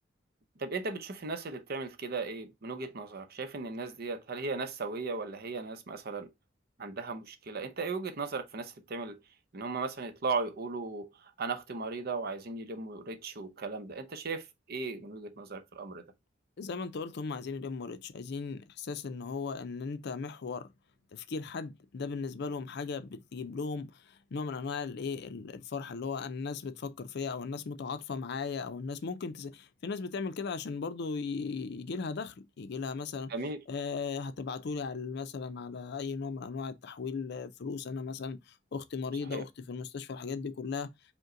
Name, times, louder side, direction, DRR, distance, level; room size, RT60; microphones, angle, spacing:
voice 1, 0.6-6.3 6.8-9.2 9.5-16.0 33.3-33.6 39.3-39.4, right 3 dB, 55° right, 0.7 m, -37 dB
voice 2, 16.6-20.7 21.1-33.3 33.7-40.9, left 5 dB, 60° left, 0.5 m, -37 dB
5.2 x 2.2 x 3.7 m
head